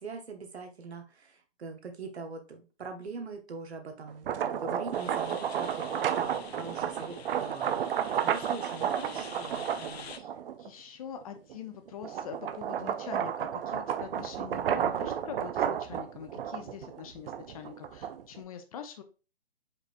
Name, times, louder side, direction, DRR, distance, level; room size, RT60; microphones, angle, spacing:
voice 1, 0.0-10.1, right 4 dB, 80° right, 4 dB, 1.1 m, -42 dB
sound 1, 4.1-10.7 11.2-18.4, right 9 dB, 60° right, 0.5 m, -32 dB
sound 2, 4.9-10.2, left 7 dB, 75° left, 0.6 m, -47 dB
voice 2, 10.6-19.0, left 8 dB, 35° left, 7 dB, 0.6 m, -44 dB
5.0 x 3.3 x 2.5 m, 0.32 s
hypercardioid pair, 140°, 32 cm